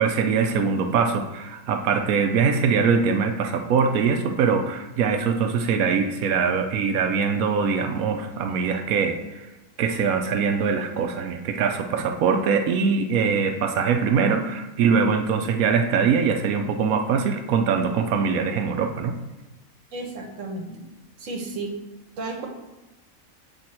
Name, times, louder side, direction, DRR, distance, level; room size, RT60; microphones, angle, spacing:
voice 1, 0.0-9.5 9.8-19.1, right 6 dB, 75° right, 5 dB, 1.0 m, -22 dB
voice 2, 19.9-20.8 21.2-21.7 22.2-22.5, right 2 dB, 60° right, 2 dB, 1.3 m, -33 dB
7.6 x 3.5 x 4.2 m, 1.0 s
omnidirectional pair, 1.5 m